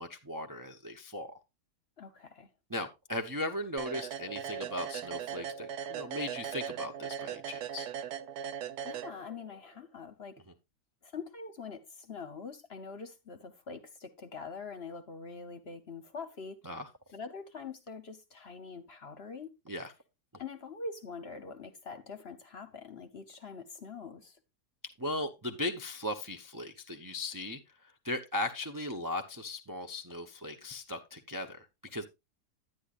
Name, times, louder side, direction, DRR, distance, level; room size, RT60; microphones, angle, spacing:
voice 1, 0.0-1.4 2.7-7.9 16.6-16.9 19.7-19.9 25.0-32.0, left 1 dB, 25° right, 0.5 m, -38 dB
voice 2, 2.0-2.5 8.8-10.4 11.0-16.6 17.1-19.5 20.4-24.4, left 4 dB, 45° left, 1.0 m, -44 dB
sound 1, 3.8-9.6, right 8 dB, 80° right, 1.2 m, -39 dB
10.0 x 10.0 x 2.4 m
omnidirectional pair, 1.7 m